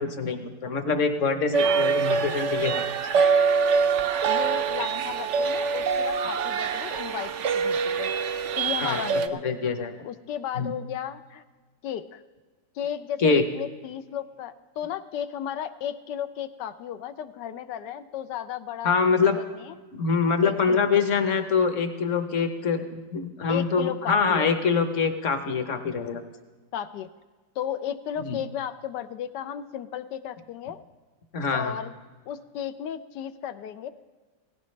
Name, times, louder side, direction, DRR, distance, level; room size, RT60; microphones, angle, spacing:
voice 1, 0.0-2.8 8.8-9.0 9.4-9.9 10.6-10.7 13.2-13.4 18.8-19.4 19.9-22.8 23.1-26.2 28.2-28.4 31.3-31.7, left 5 dB, 50° left, 7 dB, 1.2 m, -24 dB
sound 1, 1.5-9.3, right 5 dB, 65° right, 0.7 m, -24 dB
voice 2, 4.2-8.1 8.6-9.4 10.0-11.4 11.8-12.2 12.7-19.7 20.4-21.0 23.5-24.5 26.7-27.1 27.6-30.8 31.5-31.9 32.3-33.9, left 9 dB, 85° left, 10 dB, 1.2 m, -34 dB
17.5 x 15.0 x 3.2 m, 1.3 s
omnidirectional pair, 1.8 m